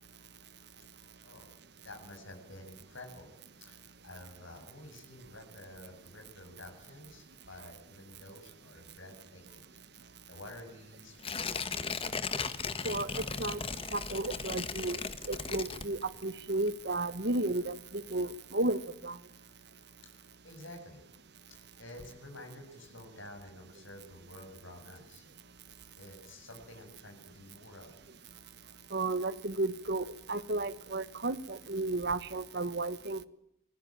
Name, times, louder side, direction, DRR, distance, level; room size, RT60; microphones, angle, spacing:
voice 1, 1.8-3.3 3.6-3.8 4.0-9.8 10.3-12.1 20.0-21.0 21.5-25.3 25.9-28.0, left 1 dB, 75° left, 4 dB, 7.7 m, -50 dB
Tearing, 11.2-16.3 16.7-16.8, left 5 dB, 30° left, 1.2 m, -37 dB
voice 2, 12.8-13.6 13.9-15.0 15.3-19.2 28.9-33.2, right 2 dB, 55° right, 13 dB, 1.5 m, -33 dB
26.0 x 20.5 x 9.0 m, 0.80 s
head